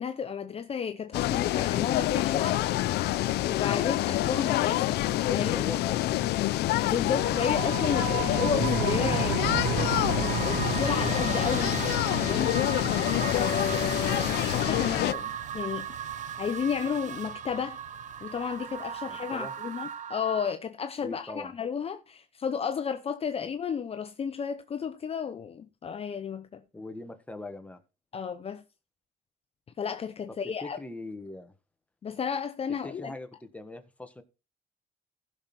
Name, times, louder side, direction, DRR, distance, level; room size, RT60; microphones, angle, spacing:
voice 1, 0.0-2.6 3.4-5.1 5.3-5.6 6.8-9.5 10.2-11.8 12.2-12.6 13.3-16.0 16.4-17.8 18.2-26.6 28.1-28.6 29.8-30.8 32.0-33.1, left 7 dB, 35° left, 0.8 m, -32 dB
sound 1, 1.1-15.1, left 15 dB, 75° left, 0.6 m, -27 dB
voice 2, 5.0-6.7 19.0-19.5 21.0-21.5 23.4-23.5 26.7-27.8 30.4-31.5 32.8-34.2, left 2 dB, 10° left, 1.4 m, -42 dB
sound 2, 7.0-18.4, right 14 dB, 80° right, 0.5 m, -35 dB
sound 3, 9.8-20.5, right 7 dB, 45° right, 0.9 m, -37 dB
15.5 x 6.1 x 4.3 m
cardioid pair, 110°, 17 cm